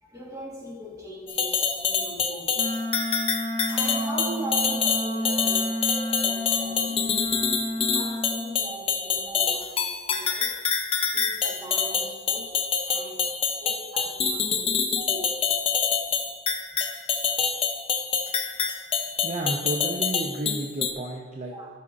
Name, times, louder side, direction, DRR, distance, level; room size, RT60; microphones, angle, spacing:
voice 1, 0.0-2.7 3.7-7.2 7.7-10.6 11.1-13.3 13.6-15.6 21.5-21.7, right 1 dB, 15° right, -2 dB, 1.3 m, -40 dB
sound 1, 1.3-20.9, left 6 dB, 30° left, 0.7 m, -26 dB
Wind instrument woodwind instrument, 2.5-8.6, left 1 dB, 65° right, 2.1 m, -31 dB
voice 2, 19.2-21.5, right 2 dB, 40° right, -1 dB, 0.6 m, -31 dB
12.0 x 5.9 x 2.5 m, 1.5 s
head